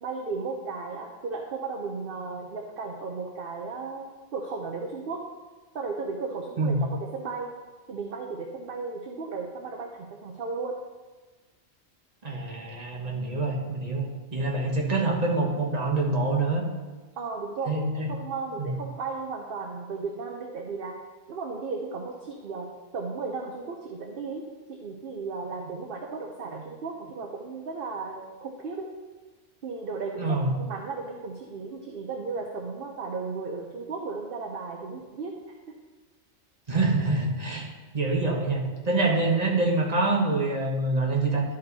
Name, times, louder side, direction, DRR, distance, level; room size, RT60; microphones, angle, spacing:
voice 1, 0.0-5.2 5.7-7.5 7.9-10.8 17.2-21.0 21.3-22.7 22.9-24.5 24.8-28.9 29.6-35.8, right 4 dB, 50° right, 1 dB, 0.9 m, -35 dB
voice 2, 12.2-16.6 17.7-18.1 18.6-18.7 30.2-30.5 36.7-37.7 37.9-41.4, right 3 dB, 30° right, -2 dB, 1.4 m, -26 dB
12.0 x 5.3 x 4.1 m, 1.3 s
omnidirectional pair, 1.3 m